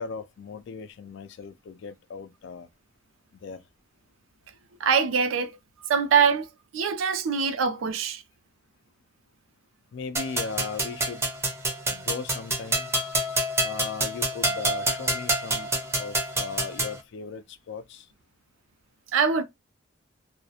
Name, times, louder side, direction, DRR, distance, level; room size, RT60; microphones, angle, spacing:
voice 1, 0.0-2.7 3.4-3.6 9.9-11.3 11.9-12.9 13.6-15.7 15.9-18.0, left 5 dB, 65° left, 0.3 m, -37 dB
voice 2, 4.8-5.5 5.9-6.5 6.7-8.2 19.1-19.4, right 6 dB, 85° right, 0.4 m, -23 dB
sound 1, 10.2-17.0, right 1 dB, 15° right, 0.5 m, -28 dB
2.3 x 2.0 x 2.7 m
head